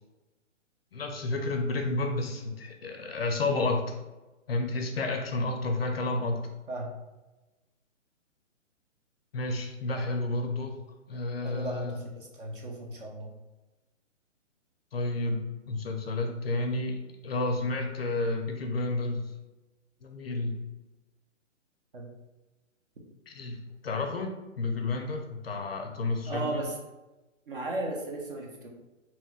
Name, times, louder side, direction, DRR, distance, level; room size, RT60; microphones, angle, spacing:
voice 1, 0.9-3.9 4.5-6.5 9.3-10.8 11.1-11.9 14.9-19.3 20.0-20.6 23.3-24.3 24.6-26.6, left 2 dB, 50° left, 4 dB, 0.5 m, -31 dB
voice 2, 11.4-12.1 12.4-13.3 21.9-22.1 26.3-26.8 27.5-28.7, right 2 dB, 45° right, 0 dB, 0.7 m, -35 dB
3.0 x 3.0 x 2.3 m, 1.1 s
hypercardioid pair, 160°, 38 cm